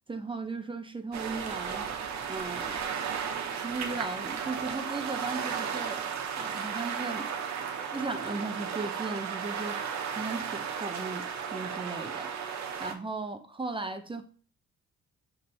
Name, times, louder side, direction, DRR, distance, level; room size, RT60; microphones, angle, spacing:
voice 1, 0.1-1.9 2.3-2.9 3.5-6.1 6.4-7.3 7.9-14.2, right 3 dB, 15° right, 0.5 m, -37 dB
sound 1, 1.1-12.9, right 7 dB, 65° right, 0.9 m, -34 dB
5.9 x 3.3 x 2.7 m
cardioid pair, 90°, 30 cm